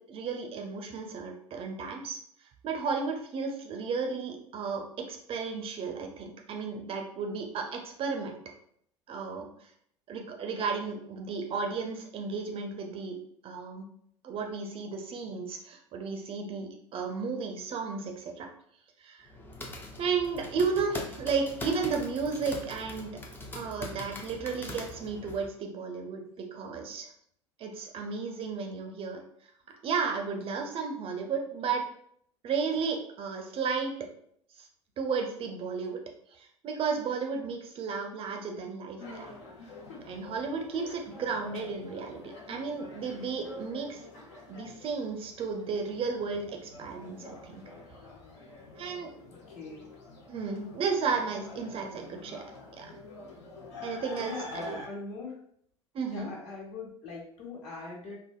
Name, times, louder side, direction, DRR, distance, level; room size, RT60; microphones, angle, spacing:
voice 1, 0.0-2.2 2.6-8.4 9.1-9.5 10.1-13.2 13.4-13.9 14.2-18.5 19.0-19.3 20.0-23.1 23.5-27.1 27.6-29.2 29.7-31.8 32.4-33.9 34.6-34.7 35.0-36.0 36.3-39.3 40.0-44.0 44.5-47.6 48.7-49.1 50.3-52.4 52.7-53.0 53.8-54.7 55.9-56.3, right 5 dB, 35° right, 3 dB, 0.5 m, -33 dB
sound 1, 19.2-25.5, left 1 dB, 15° left, 0.5 m, -42 dB
sound 2, 39.0-54.9, left 2 dB, 65° left, 0.8 m, -47 dB
voice 2, 49.3-49.9 54.2-55.4 56.1-58.2, left 3 dB, 45° left, -3 dB, 1.3 m, -41 dB
3.3 x 2.0 x 2.3 m, 0.66 s
figure-of-eight pair, 75°, 16 cm